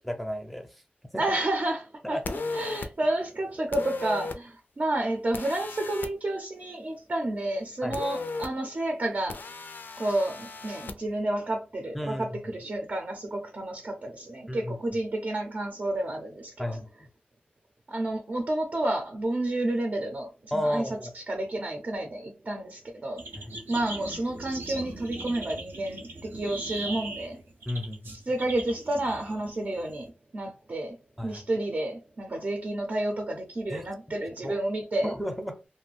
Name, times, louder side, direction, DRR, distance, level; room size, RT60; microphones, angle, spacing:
voice 1, 0.0-0.8 1.1-1.4 2.0-2.2 7.8-8.0 11.9-12.3 14.5-14.8 16.6-16.9 20.5-21.1 23.3-23.6 27.7-28.2 31.2-31.4 33.7-33.9 34.4-34.6 35.0-35.7, equal, ahead, 0.6 m, -33 dB
voice 2, 1.2-2.2 2.5-9.4 10.0-16.8 17.9-20.9 21.1-23.2 23.7-27.4 28.3-31.0 31.2-35.1, right 1 dB, 50° right, 0.6 m, -30 dB
sound 1, 2.2-2.9 3.7-4.4 5.3-6.1 7.9-8.5 9.3-10.9, left 3 dB, 70° left, 0.4 m, -35 dB
sound 2, 23.2-30.1, right 2 dB, 85° right, 0.7 m, -40 dB
2.6 x 2.2 x 3.2 m
wide cardioid pair, 75°, 3 cm